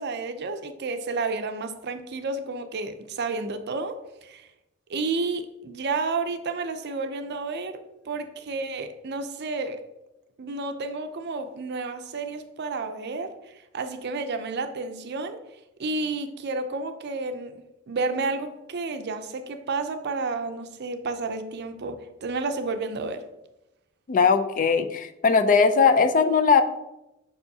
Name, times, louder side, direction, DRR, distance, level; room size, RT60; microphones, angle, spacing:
voice 1, 0.0-4.5 4.9-9.8 10.4-15.4 15.8-17.5 17.9-23.2, right 3 dB, 55° right, 8 dB, 0.5 m, -31 dB
voice 2, 24.1-26.6, left 5 dB, 40° left, 9 dB, 0.4 m, -19 dB
6.9 x 5.4 x 2.7 m, 0.93 s
head